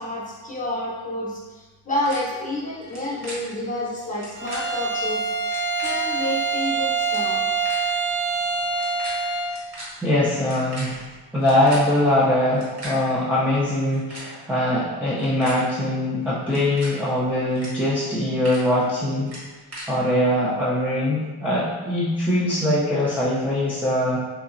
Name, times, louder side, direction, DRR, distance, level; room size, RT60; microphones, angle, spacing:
voice 1, 0.0-5.3 5.8-7.4, left 1 dB, 20° left, -5 dB, 0.8 m, -29 dB
sound 1, 2.0-2.2 2.8-3.0 3.2-3.4 4.1-4.6 5.4-5.9 6.7-6.8 7.0-7.2 7.6-7.8 8.7-9.1 9.4-9.8 10.4-11.8 12.5-12.9 13.8-14.3 15.0-15.6 16.4-16.9 17.5-17.7 18.1-18.6 19.2-19.9, right 1 dB, 40° right, 1.1 m, -38 dB
Bowed string instrument, 4.4-9.6, right 4 dB, 60° right, 0.7 m, -25 dB
voice 2, 10.0-11.1 11.3-19.3 19.9-24.2, left 1 dB, 5° right, -9 dB, 0.4 m, -22 dB
2.9 x 2.7 x 2.5 m, 1.3 s
wide cardioid pair, 125°, 39 cm